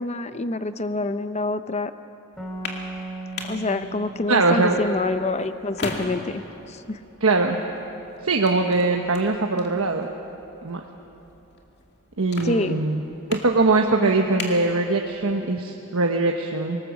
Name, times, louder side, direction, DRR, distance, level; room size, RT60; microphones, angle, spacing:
voice 1, 0.0-1.9 3.5-6.4 6.7-7.0 12.4-12.8, left 2 dB, 30° left, 11 dB, 0.7 m, -26 dB
sound 1, 2.3-15.4, left 3 dB, 55° left, 2.4 m, -40 dB
sound 2, 2.4-5.9, right 2 dB, ahead, 3.2 m, -38 dB
voice 2, 4.3-4.8 7.2-7.6 8.2-10.1 10.6-10.8 12.2-13.0 13.3-16.8, right 3 dB, 85° right, 2 dB, 1.2 m, -21 dB
25.5 x 19.0 x 7.2 m, 2.9 s
head